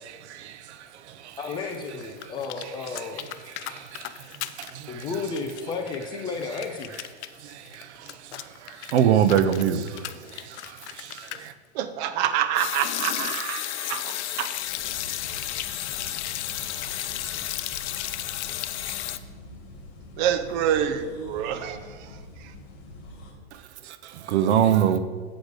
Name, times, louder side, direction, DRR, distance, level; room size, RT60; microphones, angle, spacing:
voice 1, 0.0-1.6 2.2-5.3 5.9-6.0 6.5-6.6 6.9-11.5 23.5-25.0, right 9 dB, 80° right, 0.8 m, -27 dB
voice 2, 1.4-3.2 4.9-6.9, left 4 dB, 15° left, 0.3 m, -32 dB
sound 1, 1.7-4.7 5.0-11.5 12.6-19.2, left 13 dB, 85° left, 0.6 m, -33 dB
voice 3, 11.7-14.6 20.2-22.5, right 9 dB, 45° right, 0.7 m, -27 dB
sound 2, 14.5-23.3, left 2 dB, 65° left, 2.4 m, -44 dB
7.9 x 5.1 x 6.5 m
supercardioid pair, 150°, 33 cm